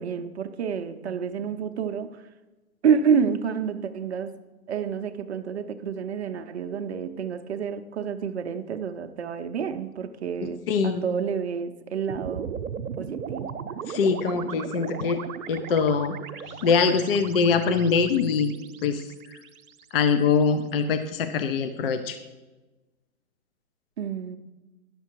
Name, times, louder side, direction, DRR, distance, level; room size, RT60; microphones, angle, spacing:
voice 1, 0.0-2.2 2.8-4.3 4.7-12.5 13.0-13.5 24.0-24.4, right 7 dB, 50° right, 8 dB, 0.6 m, -28 dB
voice 2, 10.7-11.0 13.9-15.2 15.5-16.2 16.5-18.5 18.8-19.0 19.3-19.4 19.9-22.2, left 5 dB, 40° left, 9 dB, 0.5 m, -23 dB
sound 1, 12.1-20.4, right 7 dB, 80° right, 0.8 m, -37 dB
10.5 x 6.8 x 4.5 m, 1.2 s
hypercardioid pair, 150°, 43 cm